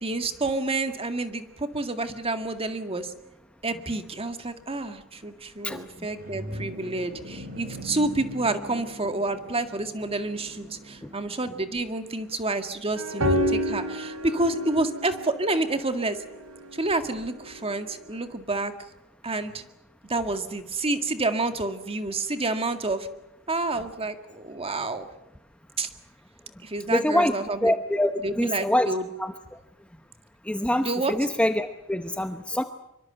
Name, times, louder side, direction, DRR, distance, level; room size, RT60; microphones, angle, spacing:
voice 1, 0.0-3.1 3.6-16.2 16.7-18.7 19.2-19.6 20.1-23.1 23.5-25.1 25.8-25.9 26.6-27.7 28.2-29.1 30.8-31.1, right 2 dB, 25° right, 8 dB, 2.0 m, -29 dB
sound 1, 5.8-11.4, right 1 dB, 45° right, 2.5 m, -41 dB
sound 2, 13.0-17.9, equal, 80° right, 3.6 m, -30 dB
voice 2, 26.9-27.3 27.6-28.1 28.4-28.9 29.2-29.3 30.5-32.6, left 1 dB, 5° left, 8 dB, 0.9 m, -24 dB
25.0 x 24.0 x 7.9 m, 0.87 s
head